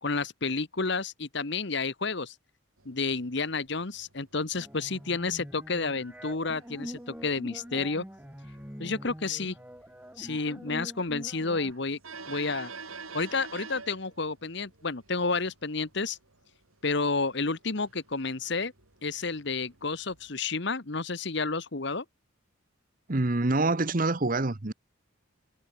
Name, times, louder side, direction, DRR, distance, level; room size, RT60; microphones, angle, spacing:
voice 1, 0.0-2.3 2.8-8.0 8.8-9.5 10.2-12.0 12.3-12.7 13.1-16.2 16.8-18.7 19.0-22.0, left 4 dB, 55° left, 1.2 m, -30 dB
sound 1, 2.8-20.3, right 5 dB, 90° right, 7.0 m, -50 dB
sound 2, 4.5-11.7, equal, 5° right, 3.7 m, -44 dB
voice 2, 23.1-24.7, right 2 dB, 40° right, 1.0 m, -26 dB
head